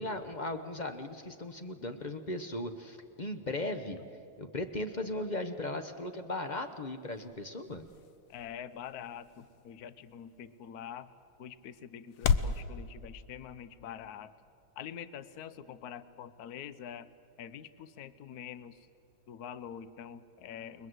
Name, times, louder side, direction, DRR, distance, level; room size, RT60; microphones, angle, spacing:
voice 1, 0.0-4.0 4.4-7.8, left 2 dB, 35° left, 8 dB, 0.7 m, -37 dB
sound 1, 6.3-12.6, left 6 dB, 80° left, 1.8 m, -37 dB
voice 2, 8.3-11.1 11.4-14.3 14.8-17.1 17.4-18.9 19.3-20.9, left 9 dB, 55° left, 14 dB, 1.2 m, -45 dB
29.0 x 22.0 x 8.0 m, 2.4 s
omnidirectional pair, 2.3 m